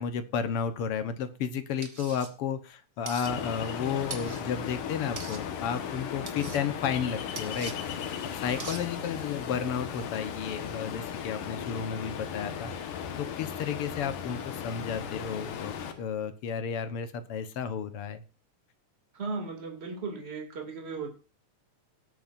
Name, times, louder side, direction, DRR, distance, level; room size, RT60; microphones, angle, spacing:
voice 1, 0.0-12.7 13.2-18.2, left 7 dB, 60° left, 10 dB, 1.7 m, -33 dB
sound 1, 1.8-2.3 3.1-3.3 4.1-4.4 5.2-5.4 6.3-6.6 7.4-7.7 8.6-8.8, right 5 dB, 45° right, 1.0 m, -41 dB
Ocean, 3.3-15.9, left 8 dB, 90° left, 3.0 m, -37 dB
sound 2, 6.3-15.8, left 19 dB, 30° left, 1.8 m, -54 dB
voice 2, 19.1-21.1, right 4 dB, 20° right, 3 dB, 2.5 m, -37 dB
18.5 x 8.9 x 2.6 m, 0.33 s
omnidirectional pair, 3.5 m